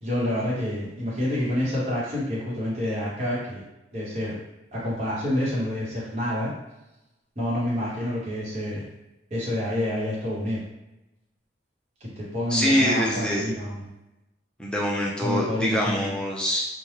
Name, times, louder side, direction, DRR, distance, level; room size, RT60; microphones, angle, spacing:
voice 1, 0.0-3.6 3.9-4.4 4.7-6.5 7.4-8.8 9.3-10.6 12.0-13.9 15.2-16.1, left 1 dB, 35° right, -8 dB, 0.9 m, -28 dB
voice 2, 12.5-13.5 14.6-16.7, equal, 5° left, -4 dB, 0.4 m, -24 dB
2.8 x 2.1 x 3.2 m, 0.95 s
head